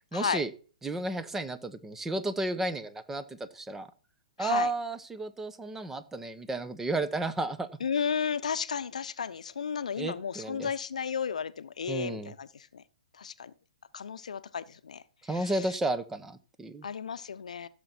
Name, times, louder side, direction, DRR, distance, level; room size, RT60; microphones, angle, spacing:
voice 1, 0.1-0.5 0.8-3.9 4.4-7.7 10.0-10.7 11.9-12.3 15.2-16.9, right 2 dB, 10° right, 1.0 m, -32 dB
voice 2, 4.4-4.7 7.8-12.8 13.2-13.5 13.9-15.0 15.3-15.7 16.8-17.7, left 7 dB, 70° left, 0.8 m, -33 dB
15.0 x 6.8 x 4.4 m
hypercardioid pair, 125°, 4 cm